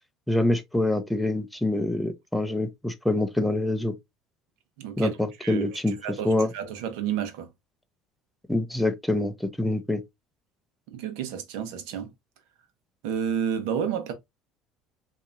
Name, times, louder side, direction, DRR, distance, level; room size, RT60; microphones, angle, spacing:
voice 1, 0.3-3.9 5.0-6.0 6.2-6.5 8.5-10.0, left 1 dB, ahead, 0.7 m, -25 dB
voice 2, 4.8-7.5 10.9-12.1 13.0-14.1, right 8 dB, 85° right, 1.0 m, -31 dB
5.7 x 2.8 x 2.6 m
cardioid pair, 130°, 0 cm